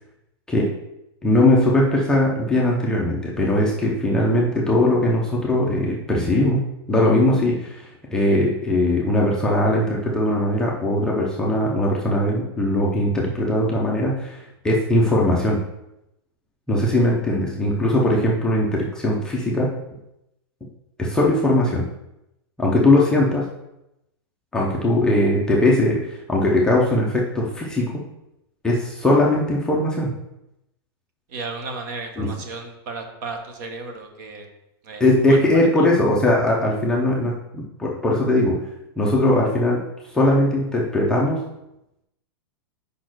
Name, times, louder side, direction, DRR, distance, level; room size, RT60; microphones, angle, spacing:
voice 1, 1.2-14.4 14.6-15.6 16.7-19.7 21.0-21.8 22.6-23.5 24.5-28.0 28.6-30.1 32.2-32.3 35.0-38.6 39.0-39.8 40.1-41.4, left 1 dB, 5° left, -4 dB, 0.5 m, -20 dB
voice 2, 31.3-34.5 34.8-35.7, right 3 dB, 45° right, 4 dB, 1.0 m, -34 dB
5.2 x 4.3 x 6.0 m, 0.88 s
supercardioid pair, 170°, 14 cm